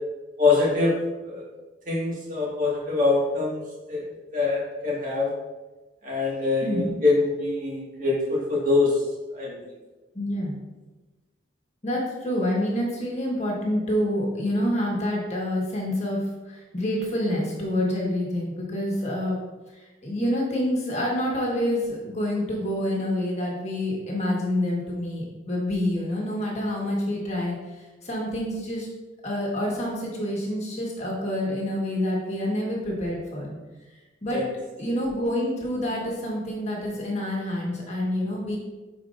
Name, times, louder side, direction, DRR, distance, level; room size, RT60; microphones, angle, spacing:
voice 1, 0.4-0.9 1.2-1.5 1.9-3.6 3.9-4.0 4.3-5.3 6.0-8.9 9.3-9.5 34.3-34.5, left 3 dB, 45° right, -4 dB, 1.7 m, -24 dB
voice 2, 6.6-7.0 10.1-10.6 11.8-19.4 19.7-28.9 29.2-33.6 34.2-34.4 34.8-38.6, left 1 dB, 35° left, -2 dB, 1.4 m, -27 dB
8.9 x 4.7 x 2.5 m, 1.2 s
head